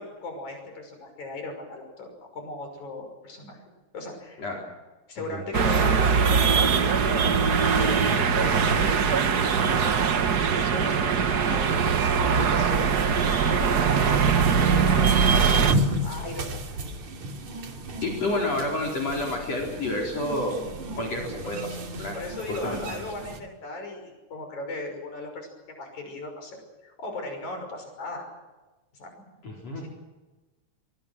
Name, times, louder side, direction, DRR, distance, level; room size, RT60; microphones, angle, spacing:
voice 1, 0.0-3.6 3.9-4.4 5.1-7.2 7.8-12.9 13.5-15.7 16.0-16.5 17.0-17.1 21.5-21.6 22.1-28.3 28.9-29.3, left 2 dB, 70° left, 4 dB, 7.3 m, -37 dB
sound 1, 5.5-15.7, right 6 dB, 50° right, 1.2 m, -22 dB
sound 2, 12.5-23.4, right 1 dB, 70° right, 4.0 m, -34 dB
voice 2, 18.0-20.6 21.0-22.2 22.6-22.8 29.4-29.8, left 2 dB, 55° left, -1 dB, 5.3 m, -29 dB
24.0 x 24.0 x 6.2 m, 1.2 s
omnidirectional pair, 3.4 m